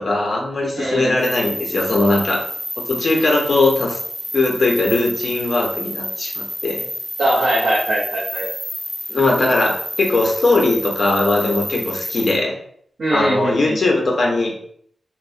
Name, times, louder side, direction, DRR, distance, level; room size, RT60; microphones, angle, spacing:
voice 1, 0.0-2.4 2.8-4.0 4.3-6.8 9.1-12.6 13.1-14.5, left 2 dB, 50° left, 0 dB, 0.6 m, -19 dB
voice 2, 0.7-1.1 7.2-8.5 11.7-11.8 13.0-13.8, right 1 dB, 75° right, -9 dB, 0.8 m, -21 dB
sound 1, 1.2-12.3, equal, 5° left, 0.8 m, -29 dB
2.9 x 2.1 x 2.5 m, 0.63 s
wide cardioid pair, 140°, 0 cm